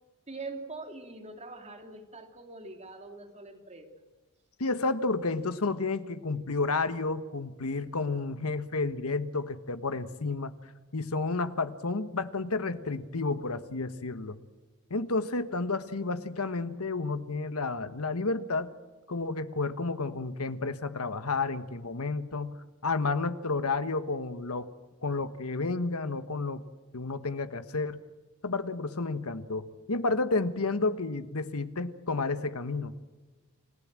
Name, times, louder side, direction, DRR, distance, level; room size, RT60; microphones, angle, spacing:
voice 1, 0.3-3.9, right 3 dB, 30° right, 3 dB, 2.9 m, -43 dB
voice 2, 4.6-10.5 10.9-14.4 14.9-18.7 19.1-24.7 25.0-26.6 26.9-28.0 28.4-33.0, left 3 dB, 75° left, 11 dB, 1.3 m, -31 dB
28.0 x 15.5 x 7.6 m, 1.3 s
head